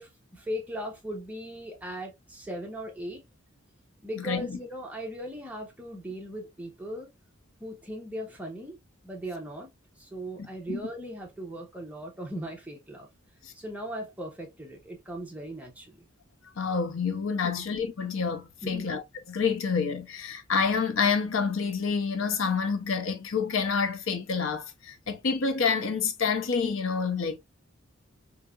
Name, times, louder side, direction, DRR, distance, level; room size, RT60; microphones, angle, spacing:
voice 1, 0.0-3.2 4.0-7.1 7.6-8.8 9.0-9.7 10.0-13.1 13.5-16.0 17.4-17.5 18.6-18.9, equal, 5° right, 0.8 m, -38 dB
voice 2, 4.2-4.6 10.7-10.8 13.4-13.5 16.6-19.0 19.3-27.4, left 5 dB, 75° left, 0.6 m, -28 dB
3.8 x 2.8 x 2.3 m
head